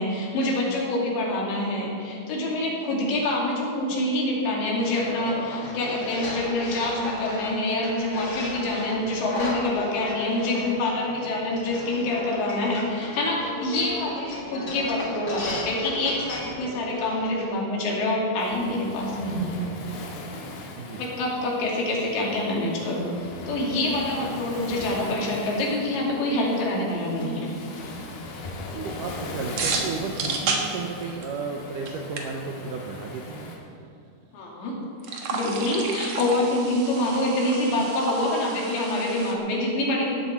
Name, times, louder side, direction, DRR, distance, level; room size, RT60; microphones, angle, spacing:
voice 1, 0.0-19.7 21.0-27.5 34.3-34.8 35.1-40.2, left 1 dB, 90° left, -3 dB, 4.8 m, -26 dB
sound 1, 4.8-17.4, left 2 dB, 40° left, 2.1 m, -35 dB
Waves surf, 18.4-33.6, left 2 dB, 65° left, 3.6 m, -39 dB
voice 2, 28.7-33.6, right 5 dB, 75° right, 1 dB, 1.9 m, -33 dB
sound 2, 29.6-31.5 31.9-32.0 32.2-32.3 35.0-39.3, right 4 dB, 60° right, 2.0 m, -31 dB
17.5 x 13.0 x 4.4 m, 2.4 s
omnidirectional pair, 4.9 m